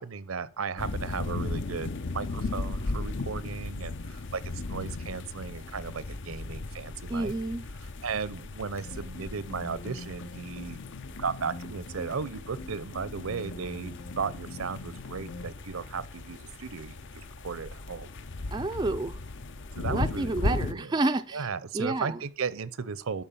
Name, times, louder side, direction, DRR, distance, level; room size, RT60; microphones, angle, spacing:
voice 1, 0.0-1.9 2.1-7.3 8.0-10.8 11.2-18.1 19.7-20.9 21.3-23.2, right 5 dB, 70° right, 0.6 m, -35 dB
sound 1, 0.8-20.7, left 2 dB, 55° left, 0.6 m, -37 dB
voice 2, 7.1-7.7 18.5-19.2 19.9-21.5 21.7-22.2, right 2 dB, 20° right, 0.4 m, -29 dB
sound 2, 8.8-15.5, left 2 dB, 85° left, 1.6 m, -43 dB
11.5 x 4.5 x 6.8 m
head